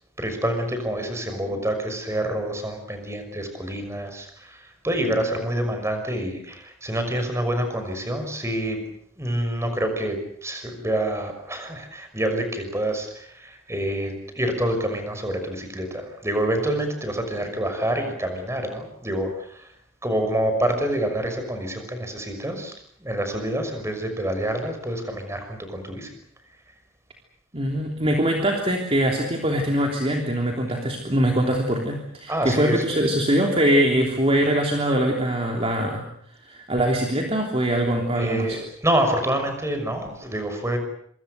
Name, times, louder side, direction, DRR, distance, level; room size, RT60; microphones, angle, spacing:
voice 1, 0.2-19.7 20.0-22.7 23.0-26.1 32.3-33.2 38.2-40.8, right 1 dB, 15° right, 6 dB, 6.1 m, -27 dB
voice 2, 27.5-36.1 36.4-38.6, right 1 dB, 30° right, 1 dB, 3.3 m, -22 dB
26.0 x 25.5 x 6.7 m, 0.64 s
head